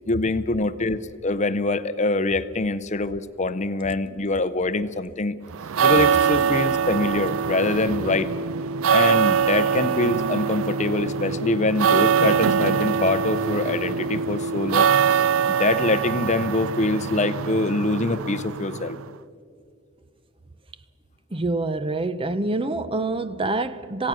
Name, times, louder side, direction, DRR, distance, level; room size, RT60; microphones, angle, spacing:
voice 1, 0.1-5.4 5.8-8.3 8.9-19.0, left 2 dB, 35° left, 0.7 m, -24 dB
sound 1, 5.5-19.1, right 7 dB, 75° right, 0.5 m, -23 dB
voice 2, 21.3-24.1, right 2 dB, 25° right, 0.6 m, -26 dB
27.0 x 16.5 x 6.2 m
head